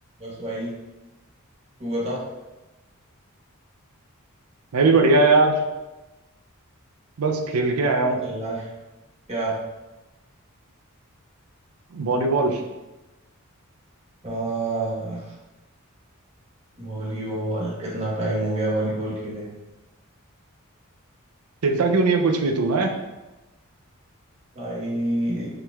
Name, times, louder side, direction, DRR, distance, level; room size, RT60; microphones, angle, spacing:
voice 1, 0.2-0.7 1.8-2.2 8.0-8.7 9.3-9.5 14.2-15.3 16.8-19.5 24.5-25.5, right 1 dB, 30° right, -5 dB, 1.3 m, -28 dB
voice 2, 4.7-5.6 7.2-8.2 11.9-12.6 21.6-23.0, right 3 dB, 90° right, 4 dB, 0.5 m, -20 dB
5.6 x 3.6 x 2.4 m, 1.1 s
head